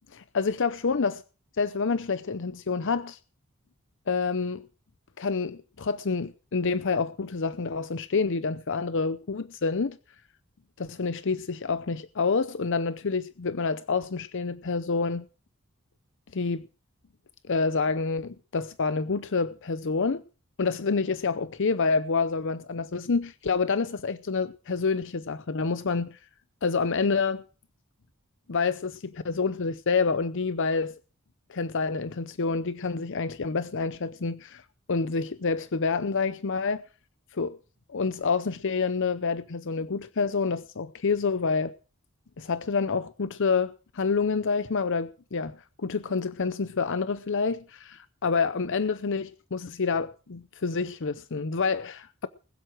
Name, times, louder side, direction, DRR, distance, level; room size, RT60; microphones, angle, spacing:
voice 1, 0.1-1.2 1.6-3.2 4.1-4.6 5.2-10.0 10.8-15.2 16.3-16.6 17.5-20.2 20.6-26.2 26.6-27.4 28.5-31.0 31.5-34.6 34.9-36.8 37.3-37.6 37.9-41.7 42.4-52.3, left 4 dB, 60° left, 0.7 m, -28 dB
21.0 x 7.8 x 6.0 m
head